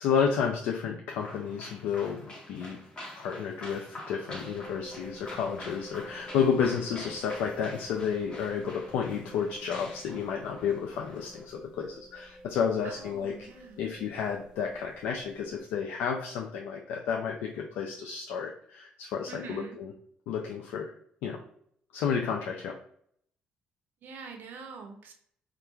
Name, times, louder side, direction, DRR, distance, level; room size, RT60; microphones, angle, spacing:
voice 1, 0.0-2.8 3.1-13.3 13.8-19.9 20.3-20.9 21.2-21.4 21.9-22.7, left 7 dB, 80° left, 1 dB, 0.3 m, -31 dB
sound 1, 1.2-11.5, left 1 dB, 30° left, 0.9 m, -46 dB
sound 2, 4.3-15.6, right 1 dB, 20° right, 0.6 m, -50 dB
voice 2, 12.8-13.8 19.3-19.8 24.0-25.1, right 4 dB, 65° right, 4 dB, 0.5 m, -44 dB
2.9 x 2.4 x 2.2 m, 0.66 s
supercardioid pair, 65°, 4 cm